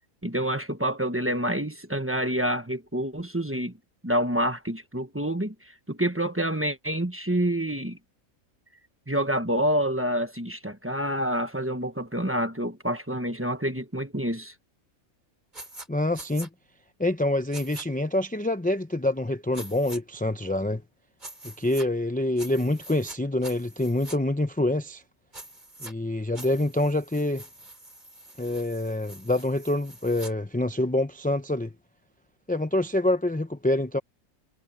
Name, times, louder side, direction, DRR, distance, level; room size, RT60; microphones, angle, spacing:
voice 1, 0.2-3.7 4.0-8.0 9.1-14.5, equal, 10° right, 1.1 m, -27 dB
sound 1, 15.5-15.9 16.1-16.5 17.5-17.8 19.5-20.0 21.2-21.9 22.4-23.2 23.4-24.2 25.3-25.9 26.3-30.3, right 1 dB, 30° right, 3.5 m, -44 dB
voice 2, 15.9-16.5 17.0-20.8 21.4-25.0 25.8-27.4 28.4-31.7 32.5-34.0, left 1 dB, 10° left, 0.6 m, -26 dB
omnidirectional pair, 1.5 m